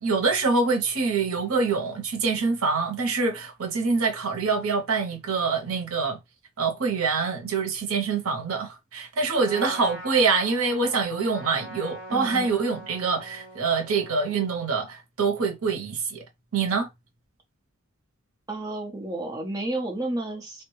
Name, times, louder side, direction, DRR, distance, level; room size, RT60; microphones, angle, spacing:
voice 1, 0.0-6.2 6.6-16.2 16.5-16.9, right 4 dB, 85° right, 0.8 m, -25 dB
Trumpet, 9.3-14.6, equal, 10° left, 1.8 m, -42 dB
voice 2, 12.1-12.5 18.5-20.6, right 2 dB, 15° right, 0.8 m, -31 dB
3.4 x 2.2 x 3.1 m
head